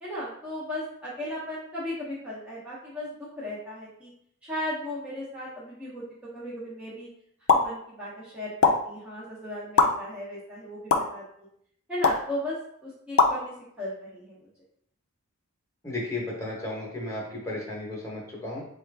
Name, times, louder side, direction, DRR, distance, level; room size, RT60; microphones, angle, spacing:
voice 1, 0.0-4.1 4.4-6.0 6.3-7.1 7.5-11.2 11.9-12.6 12.8-14.4, left 1 dB, 5° right, -9 dB, 0.7 m, -36 dB
sound 1, 7.5-7.7 8.6-8.7 9.8-9.9 10.9-11.0 12.0-12.2 13.2-13.3, left 5 dB, 65° left, 0.5 m, -18 dB
voice 2, 15.8-18.6, left 2 dB, 15° left, -3 dB, 1.0 m, -34 dB
4.3 x 2.4 x 3.3 m, 0.70 s
head